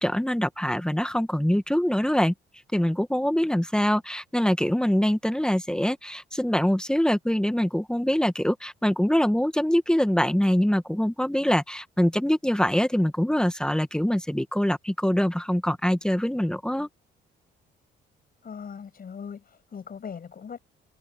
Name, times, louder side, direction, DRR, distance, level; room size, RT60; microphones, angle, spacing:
voice 1, 0.0-2.3 2.7-16.9, equal, 5° left, 1.5 m, -24 dB
voice 2, 18.4-20.6, left 6 dB, 45° left, 7.4 m, -39 dB
cardioid pair, 90°, 20 cm